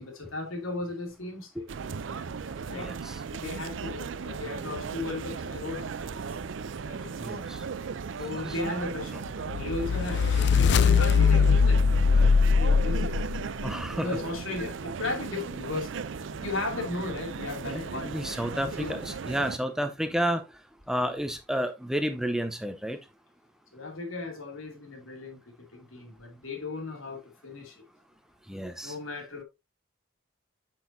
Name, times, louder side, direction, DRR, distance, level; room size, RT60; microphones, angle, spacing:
voice 1, 0.0-1.7 2.7-2.9 3.3-6.3 6.9-7.4 8.2-9.2 9.5-13.2 14.0-15.9 16.2-19.0 23.7-25.4 25.7-27.9 28.8-29.4, left 3 dB, 85° left, 2.6 m, -36 dB
sound 1, 1.7-19.6, right 5 dB, 70° right, 0.5 m, -36 dB
voice 2, 2.7-3.2 7.2-7.6 13.6-14.1 17.6-20.4 20.9-23.0 28.5-29.0, equal, 5° right, 0.6 m, -31 dB
sound 2, 9.5-13.7, left 5 dB, 55° left, 0.4 m, -21 dB
8.4 x 6.1 x 2.7 m
head